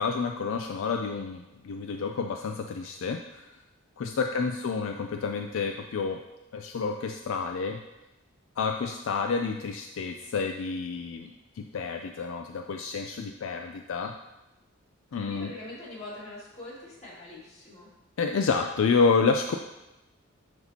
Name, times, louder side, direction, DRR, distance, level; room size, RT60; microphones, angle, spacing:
voice 1, 0.0-3.5 4.0-6.2 6.5-7.8 8.6-14.1 15.1-15.5 18.2-19.6, left 5 dB, 65° left, 4 dB, 0.4 m, -29 dB
voice 2, 15.1-17.9, left 2 dB, 30° left, -6 dB, 2.1 m, -43 dB
10.5 x 4.3 x 2.8 m, 0.98 s
head